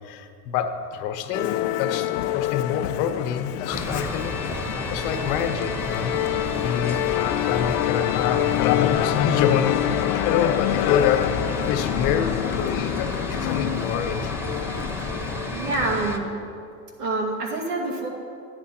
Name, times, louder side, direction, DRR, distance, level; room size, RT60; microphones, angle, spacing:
voice 1, 0.0-4.3 4.6-6.1 6.6-14.3, left 8 dB, 60° left, 7 dB, 1.1 m, -27 dB
Musical instrument, 1.3-16.0, left 14 dB, 80° left, 0.6 m, -26 dB
sound 1, 3.7-16.2, left 1 dB, 5° right, 1.0 m, -31 dB
voice 2, 15.5-16.3 17.0-18.1, right 2 dB, 90° right, -2 dB, 2.5 m, -26 dB
12.5 x 9.6 x 4.4 m, 2.5 s
hypercardioid pair, 100°, 45 cm